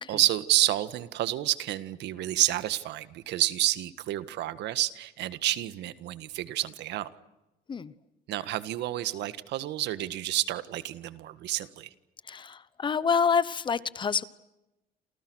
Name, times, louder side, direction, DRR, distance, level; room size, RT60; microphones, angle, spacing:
voice 1, 0.1-7.1 8.3-11.9, right 14 dB, 85° right, 1.7 m, -29 dB
voice 2, 12.3-14.2, left 6 dB, 25° left, 1.0 m, -27 dB
29.0 x 29.0 x 6.4 m
cardioid pair, 160°, 17 cm